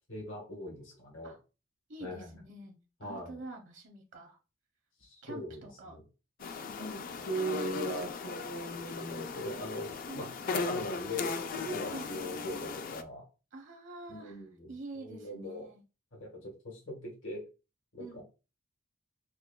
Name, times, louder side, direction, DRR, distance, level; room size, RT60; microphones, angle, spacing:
voice 1, 0.1-1.3 2.0-2.3 3.0-3.3 5.0-6.0 6.8-13.2 14.1-15.7 16.1-17.4 17.9-18.2, equal, 80° left, -1 dB, 1.4 m, -40 dB
voice 2, 1.9-4.4 5.2-6.0 6.4-6.7 10.1-10.5 11.9-12.6 13.5-14.4 14.7-15.8 18.0-18.2, right 2 dB, 65° right, 3 dB, 0.8 m, -47 dB
sound 1, 6.4-13.0, left 4 dB, 45° left, 0.4 m, -38 dB
6.0 x 2.2 x 2.3 m, 0.31 s
head